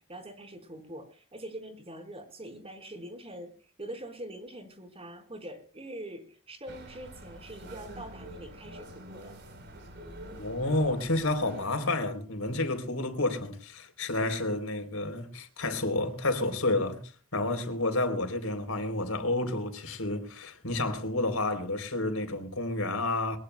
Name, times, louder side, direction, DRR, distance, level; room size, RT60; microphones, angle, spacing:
voice 1, 0.0-3.5 3.8-9.3, right 1 dB, 30° right, 4.5 m, -44 dB
sound 1, 6.7-11.7, right 1 dB, 55° right, 4.1 m, -46 dB
voice 2, 10.4-23.4, left 2 dB, 85° left, 3.6 m, -30 dB
22.0 x 21.0 x 2.3 m
head